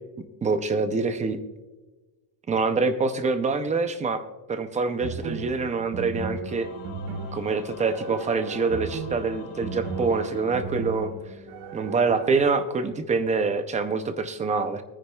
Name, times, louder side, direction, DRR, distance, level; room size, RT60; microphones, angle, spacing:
voice 1, 0.4-1.4 2.5-4.2 4.5-6.7 7.3-11.1 11.7-14.8, right 4 dB, 15° right, 9 dB, 0.4 m, -25 dB
sound 1, 5.0-12.4, right 5 dB, 80° right, 1.8 m, -36 dB
Singing / Musical instrument, 6.4-11.3, left 7 dB, 75° left, 2.5 m, -45 dB
20.0 x 9.8 x 2.2 m, 1.2 s
cardioid pair, 160°, 49 cm